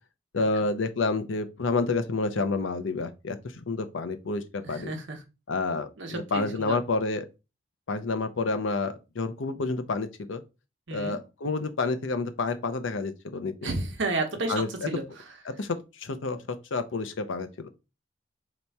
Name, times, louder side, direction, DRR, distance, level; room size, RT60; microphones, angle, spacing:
voice 1, 0.3-4.9 5.5-7.3 7.9-10.4 10.9-13.7 14.5-15.0 15.4-16.4 16.7-17.7, left 3 dB, 80° left, 0.6 m, -29 dB
voice 2, 4.6-5.2 6.0-6.8 10.9-11.2 13.6-15.0, right 2 dB, 75° right, 0.9 m, -32 dB
3.4 x 3.0 x 4.1 m
head